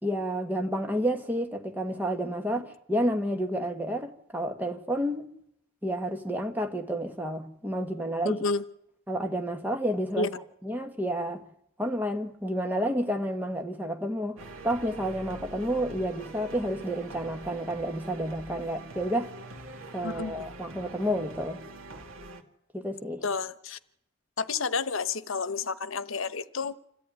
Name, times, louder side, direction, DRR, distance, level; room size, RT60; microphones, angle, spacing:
voice 1, 0.0-5.2 5.8-8.4 9.1-10.3 10.6-11.4 11.8-19.3 19.9-21.6 22.7-23.2, equal, 10° right, 1.6 m, -30 dB
voice 2, 8.2-8.6 10.2-10.3 20.0-20.4 23.2-23.8 24.4-26.8, left 4 dB, 80° left, 1.0 m, -30 dB
sound 1, 14.4-22.4, right 2 dB, 85° right, 2.0 m, -44 dB
27.0 x 14.0 x 9.4 m
head